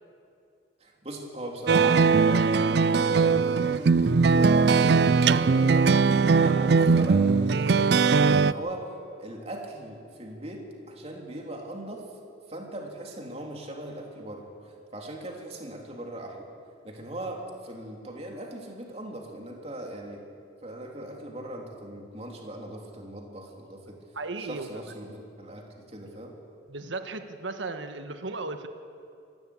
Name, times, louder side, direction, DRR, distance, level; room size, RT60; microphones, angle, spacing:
voice 1, 0.8-5.9 6.3-8.8 9.2-12.0 12.5-16.4 16.8-20.3 20.6-24.0 24.4-26.3, right 1 dB, 35° right, 0 dB, 3.3 m, -39 dB
sound 1, 1.7-8.5, right 4 dB, 60° right, 0.4 m, -20 dB
voice 2, 24.1-24.9 26.7-28.7, right 3 dB, 90° right, 7 dB, 1.5 m, -36 dB
25.5 x 13.0 x 8.6 m, 2.6 s
head